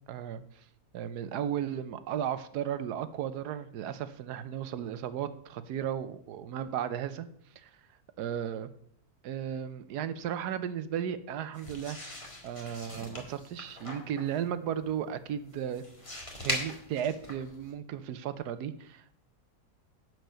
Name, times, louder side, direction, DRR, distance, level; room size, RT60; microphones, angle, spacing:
voice 1, 0.1-0.4 0.9-7.3 7.6-7.7 8.2-8.7 9.2-12.0 12.4-15.8 16.4-19.2, right 9 dB, 85° right, 13 dB, 1.3 m, -35 dB
sound 1, 11.5-17.7, left 1 dB, 20° left, 1.7 m, -41 dB
10.5 x 4.8 x 6.6 m, 0.66 s
omnidirectional pair, 1.7 m